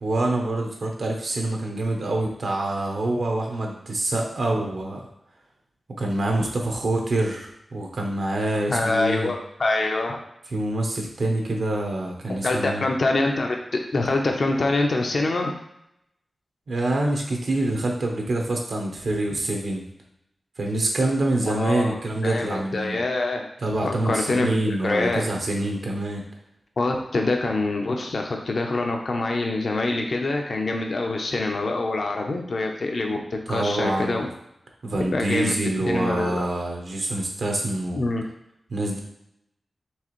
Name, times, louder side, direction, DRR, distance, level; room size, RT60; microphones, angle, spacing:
voice 1, 0.0-5.0 6.0-9.3 10.5-12.8 16.7-19.8 20.6-23.0 23.6-26.2 33.5-34.2 34.8-38.0 38.7-39.0, right 2 dB, 75° right, 1 dB, 0.9 m, -26 dB
voice 2, 8.7-10.2 12.4-15.5 21.4-22.0 22.2-23.5 23.8-25.2 26.8-34.3 35.1-35.5 35.9-36.4 37.9-38.2, left 2 dB, 65° left, 2 dB, 0.7 m, -25 dB
4.6 x 3.3 x 3.1 m, 0.79 s
cardioid pair, 50°, 0 cm